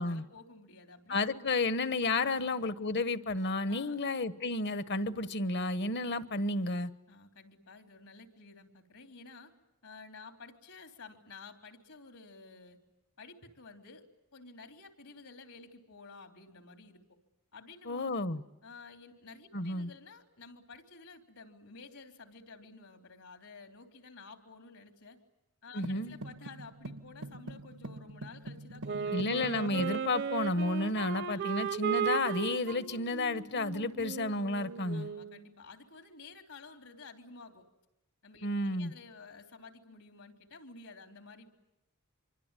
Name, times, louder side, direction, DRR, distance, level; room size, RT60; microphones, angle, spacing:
voice 1, 0.0-1.7 2.2-2.5 3.7-4.0 7.1-9.5 9.8-12.8 13.2-14.0 14.3-17.2 17.5-18.2 18.6-25.2 25.6-29.5 31.3-31.5 34.9-37.7 38.2-41.5, left 4 dB, 80° left, 3.6 m, -52 dB
voice 2, 1.1-6.9 17.9-18.4 19.5-19.9 25.7-26.2 29.1-35.1 38.4-38.9, left 2 dB, 50° left, 1.2 m, -32 dB
sound 1, 25.8-30.0, right 1 dB, 80° right, 1.3 m, -45 dB
Wind instrument woodwind instrument, 28.8-35.4, right 7 dB, 55° right, 0.9 m, -36 dB
26.0 x 24.5 x 9.1 m
head